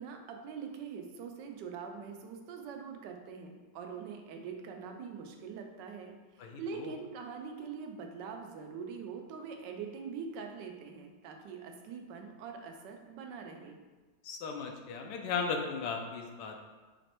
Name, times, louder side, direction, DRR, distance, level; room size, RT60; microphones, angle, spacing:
voice 1, 0.0-13.8, right 6 dB, 85° right, 3 dB, 1.2 m, -43 dB
voice 2, 6.4-6.9 14.2-16.7, left 5 dB, 80° left, 3 dB, 1.2 m, -36 dB
5.0 x 3.1 x 2.9 m, 1.3 s
omnidirectional pair, 1.9 m